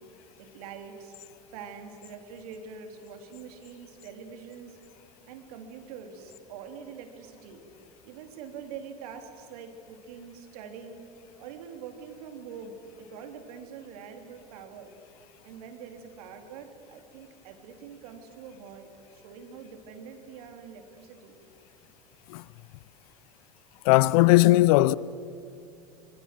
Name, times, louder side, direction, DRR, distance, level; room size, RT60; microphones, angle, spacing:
voice 1, 0.4-1.2 1.5-4.8 5.3-7.6 8.0-11.0 11.4-14.9 15.4-21.4, right 6 dB, 70° right, 3.3 m, -44 dB
voice 2, 23.8-25.0, left 18 dB, 65° left, 0.6 m, -18 dB
26.0 x 22.5 x 7.7 m
hypercardioid pair, 90°, 20 cm